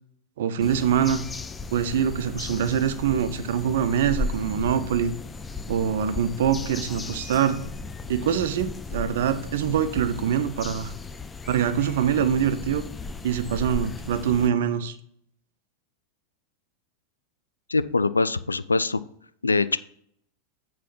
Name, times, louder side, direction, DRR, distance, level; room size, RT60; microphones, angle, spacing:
voice 1, 0.4-1.2 1.7-5.1 5.7-7.6 8.1-10.9 11.5-12.8 13.2-15.0, right 8 dB, 55° right, 10 dB, 0.7 m, -24 dB
sound 1, 0.6-14.5, left 3 dB, 15° left, 0.5 m, -36 dB
voice 2, 17.7-19.0 19.4-19.8, left 3 dB, 80° left, 15 dB, 0.4 m, -23 dB
8.3 x 4.2 x 5.7 m, 0.67 s
figure-of-eight pair, 90°, 0 cm